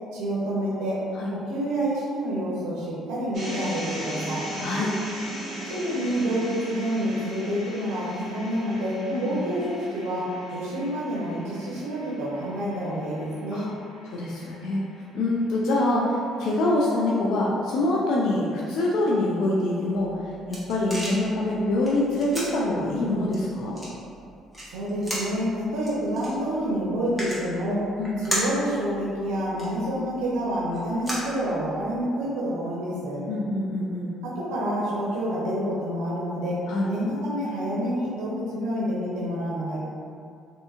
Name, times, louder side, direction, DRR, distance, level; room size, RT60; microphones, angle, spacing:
voice 1, 0.1-1.0 1.3-4.4 5.6-13.6 24.7-27.9 28.2-33.2 34.2-36.6 36.9-39.8, equal, 85° right, -6 dB, 0.5 m, -28 dB
sound 1, 3.3-15.5, equal, 55° right, 1.0 m, -38 dB
voice 2, 9.1-9.4 13.5-13.7 14.1-14.8 15.1-20.1 20.5-23.8 28.0-28.2 33.3-34.1 36.7-36.9, left 1 dB, 75° left, -4 dB, 0.3 m, -25 dB
sound 2, 19.9-32.0, equal, ahead, 0.9 m, -37 dB
2.7 x 2.6 x 2.3 m, 2.4 s
supercardioid pair, 80°, 0 cm